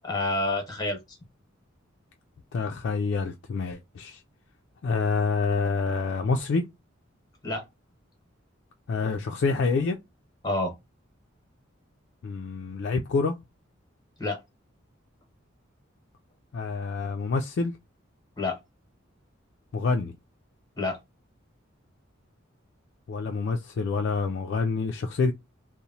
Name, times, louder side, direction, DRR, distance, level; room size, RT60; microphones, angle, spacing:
voice 1, 0.0-1.2 7.4-7.6 10.4-10.7 14.2-14.4 18.4-18.6 20.8-21.0, left 2 dB, 20° left, 0.9 m, -28 dB
voice 2, 2.5-4.2 4.8-6.6 8.9-10.0 12.2-13.3 16.5-17.7 19.7-20.1 23.1-25.3, left 4 dB, 55° left, 0.3 m, -27 dB
2.9 x 2.0 x 2.6 m
head